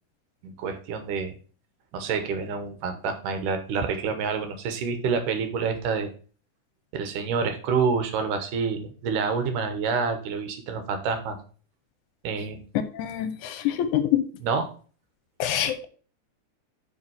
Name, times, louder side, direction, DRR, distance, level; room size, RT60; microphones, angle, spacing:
voice 1, 0.4-1.3 1.9-6.1 6.9-11.4 12.2-12.6 14.4-14.7, right 5 dB, 80° right, 7 dB, 2.6 m, -28 dB
voice 2, 12.8-14.2 15.4-15.9, left 11 dB, 75° left, 11 dB, 2.0 m, -25 dB
5.7 x 5.1 x 5.6 m, 0.39 s
omnidirectional pair, 3.7 m